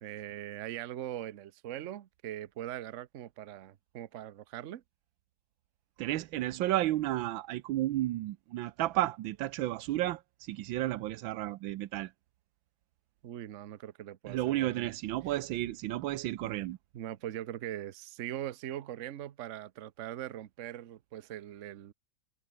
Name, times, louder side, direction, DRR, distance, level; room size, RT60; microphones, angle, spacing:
voice 1, 0.0-4.8 13.2-14.9 16.4-16.6 16.9-21.9, right 12 dB, 55° right, 0.9 m, -41 dB
voice 2, 6.0-12.1 14.3-16.8, right 15 dB, 85° right, 1.5 m, -32 dB
omnidirectional pair, 2.1 m